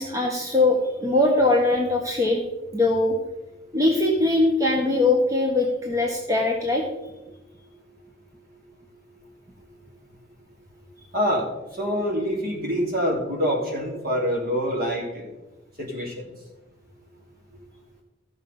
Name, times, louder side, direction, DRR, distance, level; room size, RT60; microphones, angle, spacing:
voice 1, 0.0-2.4 2.7-3.1 3.7-6.8, left 2 dB, 20° right, 0 dB, 1.3 m, -21 dB
voice 2, 11.1-15.3 15.8-16.3, equal, 50° right, -1 dB, 3.1 m, -26 dB
14.5 x 6.4 x 5.5 m, 1.1 s
head